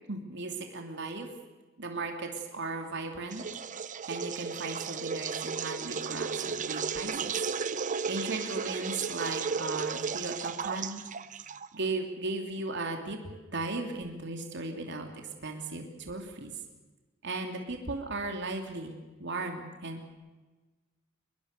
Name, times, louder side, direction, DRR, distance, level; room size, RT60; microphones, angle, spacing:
voice 1, 0.1-1.3 1.8-3.4 4.1-7.5 7.8-11.0 11.4-11.5 11.7-13.2 13.5-16.5 17.2-18.9 19.2-20.1, right 3 dB, 60° right, 3 dB, 3.0 m, -36 dB
sound 1, 3.3-11.8, right 5 dB, 40° right, 0.8 m, -34 dB
23.5 x 21.5 x 6.8 m, 1.2 s
head